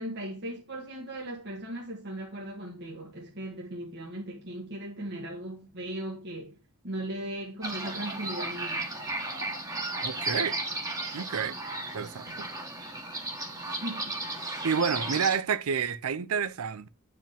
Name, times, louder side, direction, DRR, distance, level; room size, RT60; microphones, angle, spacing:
voice 1, 0.0-6.6 6.8-8.8 13.7-14.2, right 1 dB, 50° right, 1.5 m, -38 dB
sound 1, 7.6-15.3, right 2 dB, 15° right, 1.4 m, -34 dB
voice 2, 10.0-10.6 11.1-11.6 11.9-12.5 14.6-16.9, right 6 dB, 70° right, 0.5 m, -29 dB
9.0 x 4.9 x 3.6 m
head